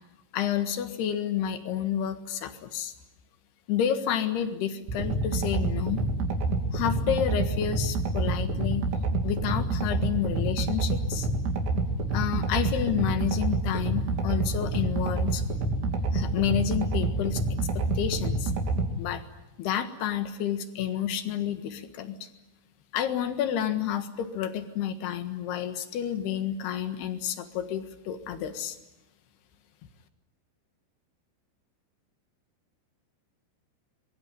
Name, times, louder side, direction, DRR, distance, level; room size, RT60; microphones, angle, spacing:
voice 1, 0.3-2.9 3.7-6.0 6.7-8.9 9.2-11.3 12.1-15.4 16.1-18.5 19.0-19.2 19.6-22.2 22.9-28.8, left 9 dB, 65° left, 9 dB, 3.2 m, -30 dB
sound 1, 4.9-18.9, right 2 dB, 65° right, 4.9 m, -28 dB
24.0 x 22.5 x 9.6 m, 0.95 s
omnidirectional pair, 5.8 m